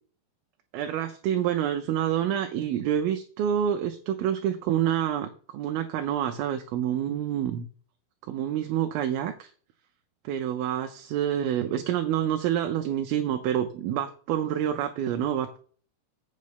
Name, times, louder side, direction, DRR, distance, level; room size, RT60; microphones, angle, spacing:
voice 1, 0.7-7.7 8.3-9.5 10.2-15.6, right 10 dB, 80° right, 6 dB, 2.5 m, -27 dB
8.4 x 5.4 x 6.5 m, 0.43 s
omnidirectional pair, 4.5 m